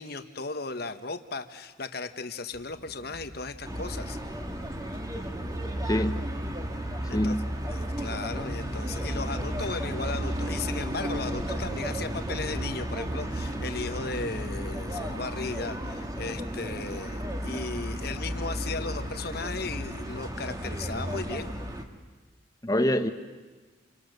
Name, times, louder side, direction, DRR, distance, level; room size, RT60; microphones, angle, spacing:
voice 1, 0.0-4.2 7.1-7.4 7.7-21.5, left 3 dB, 50° left, 1.2 m, -36 dB
sound 1, 2.5-21.1, equal, 90° right, 2.7 m, -49 dB
sound 2, 3.6-21.8, equal, 20° right, 1.6 m, -33 dB
voice 2, 5.9-6.2 7.0-7.5 22.6-23.1, left 1 dB, 20° left, 1.1 m, -25 dB
28.5 x 25.5 x 6.7 m
head